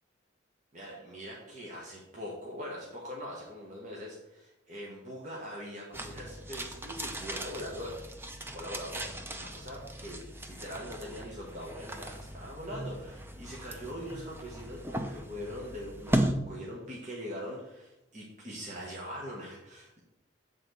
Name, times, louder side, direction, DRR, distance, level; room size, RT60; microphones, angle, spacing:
voice 1, 0.7-8.0 8.5-20.0, equal, 40° right, -4 dB, 1.3 m, -42 dB
sound 1, 5.9-16.3, right 1 dB, 10° right, 0.5 m, -37 dB
7.5 x 3.9 x 6.2 m, 0.92 s
head